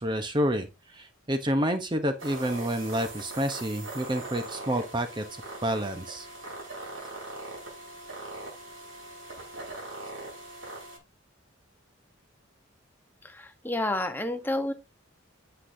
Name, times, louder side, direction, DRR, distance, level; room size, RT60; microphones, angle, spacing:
voice 1, 0.0-5.2 5.6-6.3, equal, 20° right, 0.8 m, -29 dB
sound 1, 2.2-11.0, right 2 dB, 70° right, 5.8 m, -41 dB
voice 2, 13.3-14.7, left 1 dB, 10° left, 1.0 m, -29 dB
9.8 x 7.9 x 2.7 m
head